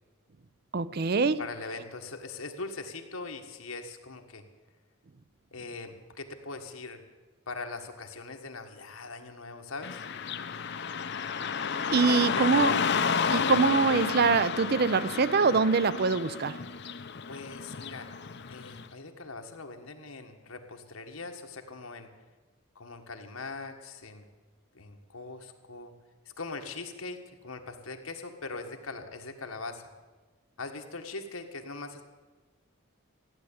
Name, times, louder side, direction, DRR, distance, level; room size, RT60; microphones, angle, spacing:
voice 1, 0.7-1.4 11.9-12.8 13.3-16.6, right 4 dB, 50° right, 0.5 m, -24 dB
voice 2, 1.4-4.4 5.5-7.0 7.5-10.1 11.9-12.6 17.3-18.1 18.5-22.1 22.7-24.2 24.7-25.9 26.2-29.9 30.6-32.0, left 3 dB, 90° left, 1.6 m, -41 dB
Car passing by / Traffic noise roadway noise, 9.8-18.8, left 6 dB, 55° left, 0.7 m, -31 dB
15.0 x 10.0 x 8.6 m
head